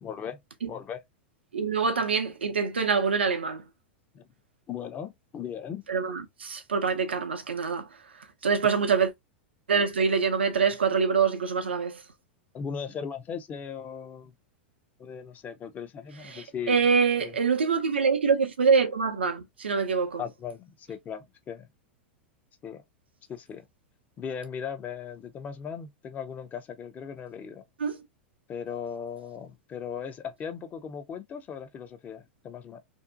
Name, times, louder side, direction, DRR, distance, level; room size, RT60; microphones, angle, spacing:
voice 1, 0.0-0.4 0.7-1.0 4.1-4.3 4.7-5.8 8.6-8.7 12.5-14.3 15.0-16.8 17.2-17.3 20.2-21.7 22.6-22.8 23.3-23.7 24.2-27.6 28.5-32.8, left 7 dB, 30° left, 0.6 m, -38 dB
voice 2, 1.5-3.6 5.9-7.9 8.1-9.1 9.7-12.0 16.2-20.2 27.8-28.0, right 5 dB, 85° right, 0.5 m, -25 dB
2.6 x 2.1 x 2.5 m
hypercardioid pair, 100°, 6 cm